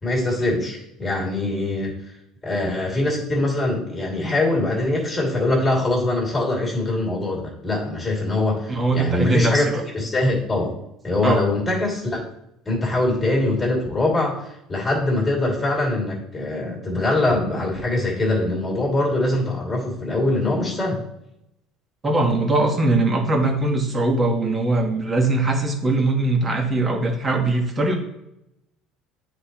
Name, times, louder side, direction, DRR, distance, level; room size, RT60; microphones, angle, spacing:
voice 1, 0.0-1.9 2.4-10.7 11.0-12.2 12.7-21.0, left 2 dB, 15° left, -2 dB, 2.5 m, -23 dB
voice 2, 8.7-9.8 11.2-11.5 22.0-27.9, right 2 dB, 20° right, 2 dB, 1.4 m, -21 dB
9.5 x 4.0 x 3.0 m, 0.84 s
cardioid pair, 135°, 0 cm